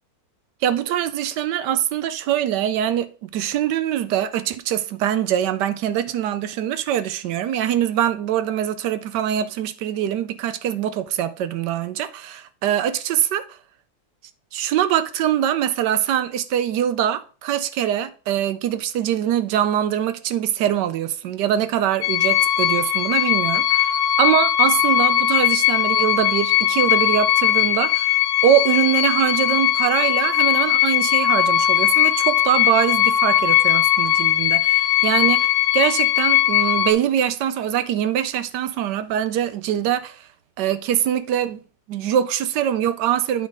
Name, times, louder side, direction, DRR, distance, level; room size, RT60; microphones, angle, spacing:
voice 1, 0.6-13.6 14.5-40.3 40.6-41.6 41.9-43.5, right 10 dB, 70° right, 1.1 m, -23 dB
sound 1, 22.0-36.9, left 12 dB, 70° left, 0.7 m, -19 dB
8.9 x 3.9 x 4.8 m
omnidirectional pair, 2.1 m